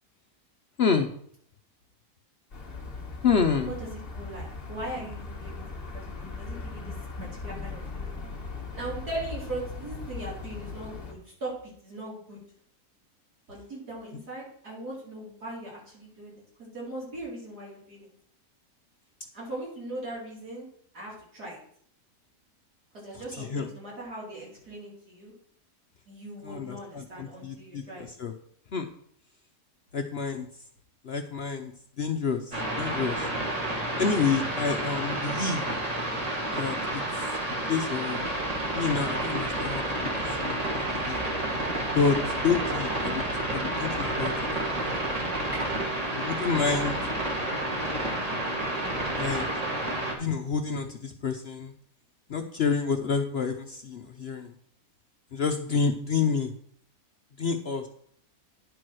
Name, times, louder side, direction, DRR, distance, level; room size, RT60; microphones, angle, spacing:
voice 1, 0.8-1.1 3.2-3.7 23.1-23.7 26.4-28.3 28.7-28.9 29.9-30.5 31.0-33.3 34.0-35.7 36.5-37.3 37.7-38.2 38.7-40.6 40.9-41.2 41.9-43.2 43.5-44.9 46.2-47.0 49.2-49.4 50.2-51.7 52.3-54.5 55.3-56.5 57.4-57.9, left 5 dB, 55° left, 6 dB, 0.7 m, -29 dB
sound 1, 2.5-11.1, left 4 dB, 40° left, 1.6 m, -39 dB
voice 2, 4.1-6.9 7.2-8.2 8.7-12.4 13.5-16.3 16.6-18.1 19.3-20.7 20.9-21.6 22.9-25.3 26.1-28.1 45.5-45.7, right 2 dB, 80° right, -5 dB, 4.8 m, -39 dB
sound 2, 32.5-50.2, right 1 dB, 25° right, 1.7 m, -30 dB
10.0 x 4.7 x 6.2 m, 0.62 s
omnidirectional pair, 1.7 m